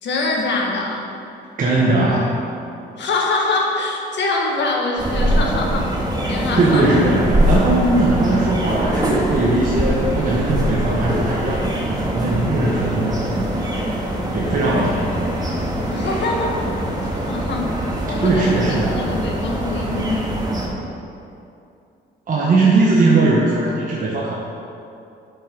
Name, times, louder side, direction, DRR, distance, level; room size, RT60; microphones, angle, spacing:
voice 1, 0.0-1.1 3.0-5.9 6.3-7.0 14.5-15.0 15.9-16.7 17.1-17.7 18.0-20.4, left 3 dB, 65° left, 0 dB, 1.6 m, -24 dB
voice 2, 1.6-2.4 6.6-13.7 14.3-15.2 18.2-19.1 22.3-24.4, right 2 dB, 45° right, -4 dB, 1.3 m, -19 dB
sound 1, 5.0-20.7, right 1 dB, 20° right, 1.8 m, -23 dB
8.5 x 6.0 x 5.4 m, 2.6 s
cardioid pair, 90°, 20 cm